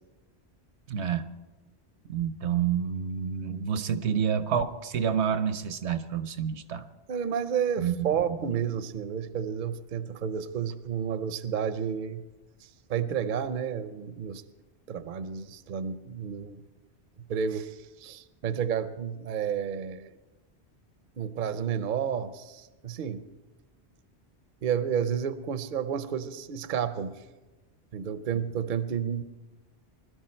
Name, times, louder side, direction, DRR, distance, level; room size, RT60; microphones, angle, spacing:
voice 1, 0.9-1.3 2.1-6.9 7.8-8.6, right 8 dB, 75° right, 11 dB, 1.0 m, -29 dB
voice 2, 7.1-12.2 12.6-14.4 14.9-16.6 17.3-20.1 21.2-23.2 24.6-27.1 27.9-29.2, right 7 dB, 50° right, 12 dB, 0.7 m, -31 dB
21.0 x 12.5 x 4.4 m, 1.1 s
omnidirectional pair, 1.1 m